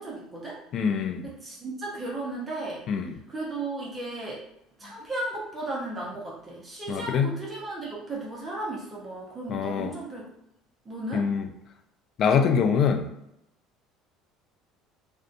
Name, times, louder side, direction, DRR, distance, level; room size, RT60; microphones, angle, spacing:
voice 1, 0.0-0.6 1.2-2.8 3.3-4.4 4.8-10.3 10.8-11.3, right 2 dB, 20° right, -5 dB, 0.7 m, -35 dB
voice 2, 0.7-1.3 2.9-3.1 6.9-7.3 9.5-9.9 11.1-11.5 12.2-13.1, left 6 dB, 45° left, 6 dB, 0.3 m, -24 dB
2.6 x 2.2 x 2.5 m, 0.82 s
cardioid pair, 140°, 0 cm